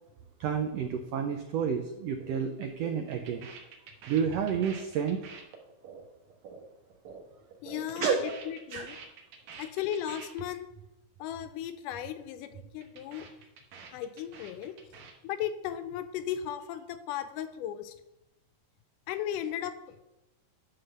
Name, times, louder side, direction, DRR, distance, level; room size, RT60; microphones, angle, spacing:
voice 1, 0.4-3.5 4.1-5.3 8.0-8.3 8.7-8.9, right 7 dB, 85° right, 5 dB, 1.4 m, -30 dB
sound 1, 2.2-2.4 2.7-7.2 7.5-10.4 10.7-10.9 11.1-11.5 11.8-12.1 12.4-15.1, right 6 dB, 70° right, 2.4 m, -48 dB
voice 2, 7.6-9.0 9.6-10.7 11.2-13.3 13.9-14.7 15.2-17.9 19.1-20.0, left 10 dB, 90° left, 11 dB, 2.2 m, -36 dB
9.8 x 3.9 x 6.5 m, 0.93 s
omnidirectional pair, 3.6 m